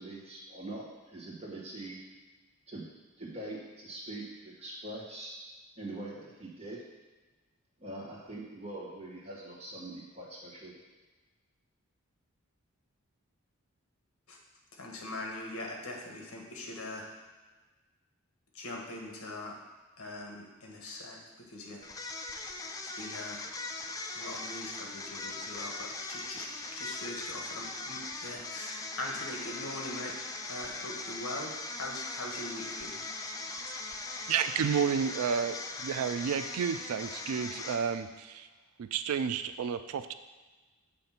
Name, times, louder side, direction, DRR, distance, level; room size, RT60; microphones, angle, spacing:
voice 1, 0.0-2.0 2.7-2.9 3.2-5.3 5.8-6.8 7.8-10.7, right 2 dB, 30° right, -5 dB, 1.6 m, -43 dB
voice 2, 14.8-17.1 18.5-19.5 20.0-21.2 21.5-21.9 23.0-23.5 24.1-26.5 26.7-30.1 30.4-33.0, left 1 dB, 70° left, 0 dB, 1.3 m, -41 dB
sound 1, 21.8-38.1, left 3 dB, 15° left, 0.3 m, -40 dB
voice 3, 34.3-35.6 35.8-38.5 38.8-40.1, right 7 dB, 75° right, 11 dB, 0.3 m, -31 dB
7.0 x 3.3 x 5.8 m, 1.3 s
head